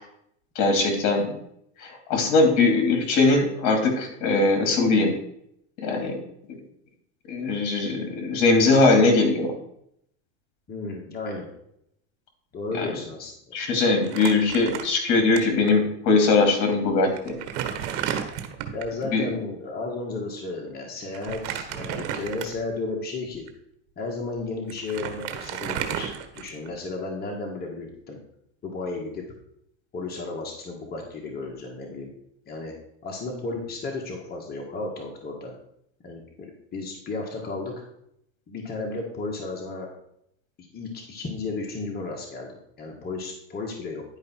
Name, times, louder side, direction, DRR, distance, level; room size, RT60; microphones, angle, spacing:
voice 1, 0.6-1.4 1.8-5.1 5.8-6.2 6.5-6.6 7.3-9.5 12.8-12.9 13.5-17.4 19.1-19.3, left 3 dB, 55° left, 4 dB, 2.6 m, -21 dB
voice 2, 10.7-11.5 12.5-13.3 18.7-23.5 24.0-28.2 28.6-29.2 29.9-32.1 32.5-32.7 33.0-35.5 36.0-37.7 38.5-39.9 40.6-44.0, left 3 dB, 25° left, 0 dB, 1.8 m, -33 dB
Crumpling crinkling, 14.0-15.4 15.7-15.8 16.6-16.7 17.2-19.0 21.1-22.7 23.3-23.5 24.4-24.5 24.7-26.8, right 9 dB, 70° right, 1.4 m, -32 dB
10.5 x 5.1 x 4.6 m, 0.74 s
supercardioid pair, 125°, 34 cm